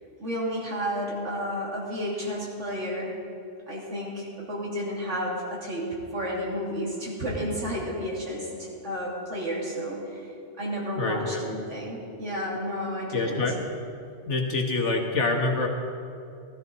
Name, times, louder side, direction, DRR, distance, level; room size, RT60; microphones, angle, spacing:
voice 1, 0.2-3.1 3.7-13.4, equal, 80° right, -4 dB, 3.1 m, -32 dB
voice 2, 11.0-11.5 13.1-13.6 14.3-15.7, left 3 dB, 75° left, 2 dB, 1.7 m, -26 dB
16.0 x 13.0 x 4.1 m, 2.6 s
omnidirectional pair, 1.2 m